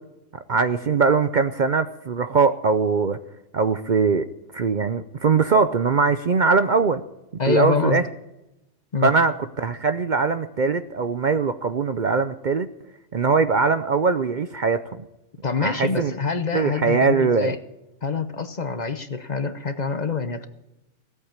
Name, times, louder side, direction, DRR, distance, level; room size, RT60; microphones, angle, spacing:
voice 1, 0.5-3.2 3.5-4.3 4.5-7.0 7.5-8.0 9.0-12.7 13.1-15.1 15.6-16.1 16.5-17.6, right 4 dB, 50° right, 11 dB, 0.7 m, -21 dB
voice 2, 7.4-8.0 8.9-9.1 15.4-17.6 18.0-20.5, left 5 dB, 40° left, 9 dB, 0.9 m, -25 dB
17.0 x 8.3 x 8.8 m, 0.92 s
omnidirectional pair, 1.2 m